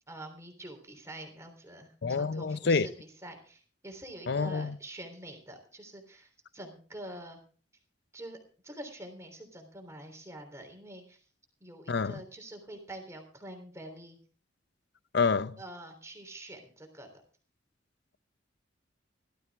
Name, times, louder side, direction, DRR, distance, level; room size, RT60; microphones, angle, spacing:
voice 1, 0.1-7.4 8.1-8.4 8.6-11.2 11.6-14.2 15.6-17.2, right 1 dB, 15° right, 3.4 m, -46 dB
voice 2, 2.0-2.9 4.3-4.7 11.9-12.1 15.1-15.6, left 4 dB, 60° left, 0.6 m, -27 dB
17.5 x 13.0 x 3.5 m
head